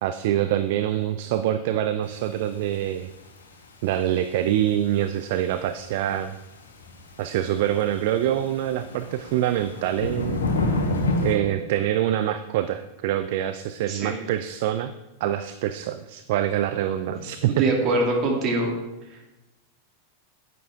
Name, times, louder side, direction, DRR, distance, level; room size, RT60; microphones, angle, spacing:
voice 1, 0.0-3.1 3.8-6.3 7.2-10.5 11.2-14.9 15.2-17.6, right 12 dB, 55° right, 11 dB, 0.4 m, -25 dB
sound 1, 2.1-2.2 2.6-2.7 3.1-3.2 3.4-3.6 3.9-4.0 5.2-5.3 5.5-5.6 5.7-5.9 6.3-6.4 6.7-7.2 7.7-11.4, left 2 dB, 70° left, 1.5 m, -28 dB
voice 2, 13.9-14.2 17.5-18.7, right 2 dB, 35° right, 1 dB, 2.5 m, -23 dB
10.0 x 9.5 x 3.6 m, 1.0 s
figure-of-eight pair, 90°, 0 cm